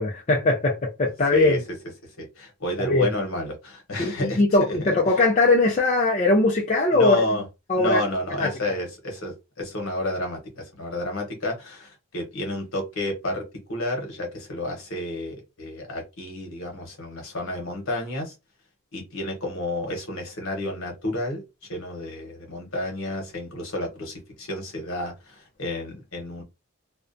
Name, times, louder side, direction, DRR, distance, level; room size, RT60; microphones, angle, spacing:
voice 1, 0.0-1.5 2.8-3.1 4.0-7.2 7.7-8.0 8.3-8.5, left 2 dB, 30° left, 0.4 m, -20 dB
voice 2, 1.3-1.6 2.0-5.1 6.9-7.4 7.7-13.4 13.7-18.3 18.9-21.4 21.7-26.4, left 1 dB, 70° left, 1.0 m, -31 dB
2.5 x 2.1 x 2.5 m
head